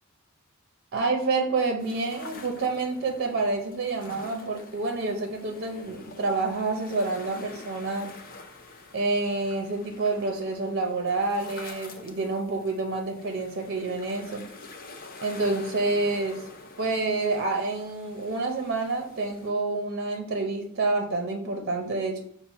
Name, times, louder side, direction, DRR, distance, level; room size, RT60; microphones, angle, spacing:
voice 1, 0.9-8.1 8.9-14.5 15.2-16.5 16.8-22.2, right 3 dB, 50° right, 3 dB, 0.5 m, -28 dB
sound 1, 1.8-19.5, left 3 dB, 45° left, 0.6 m, -47 dB
5.8 x 2.0 x 4.0 m, 0.65 s
head